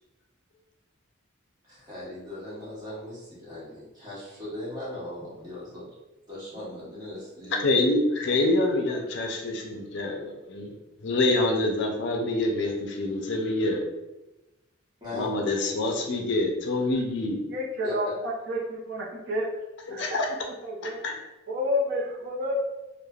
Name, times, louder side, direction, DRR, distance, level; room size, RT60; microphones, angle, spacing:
voice 1, 1.6-5.9 6.3-7.8 15.0-15.3 15.6-16.1 17.8-17.9, left 1 dB, 20° right, -9 dB, 1.1 m, -39 dB
voice 2, 7.6-10.7 11.0-13.8 15.1-17.4 19.9-20.3 20.8-21.1, left 2 dB, 60° left, 1 dB, 0.4 m, -26 dB
voice 3, 17.5-19.5 19.9-20.2 20.6-21.0 21.5-22.6, left 1 dB, 55° right, -3 dB, 0.5 m, -30 dB
3.1 x 2.0 x 2.3 m, 1.0 s
head